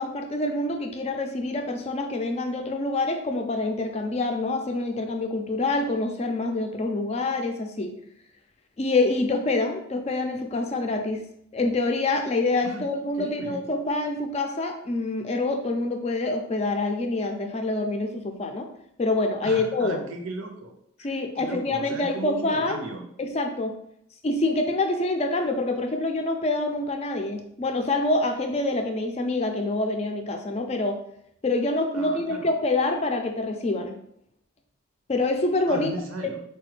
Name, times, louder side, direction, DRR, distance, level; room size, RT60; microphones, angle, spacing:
voice 1, 0.0-7.9 8.8-11.2 11.5-18.7 19.0-20.0 21.0-22.8 23.2-23.7 24.2-31.0 31.4-34.0 35.1-35.9 36.2-36.4, left 2 dB, 30° left, 5 dB, 0.4 m, -26 dB
voice 2, 13.1-13.6 19.4-23.1 31.9-32.5 35.7-36.4, right 3 dB, 80° right, 4 dB, 0.6 m, -37 dB
4.1 x 2.2 x 3.2 m, 0.73 s
head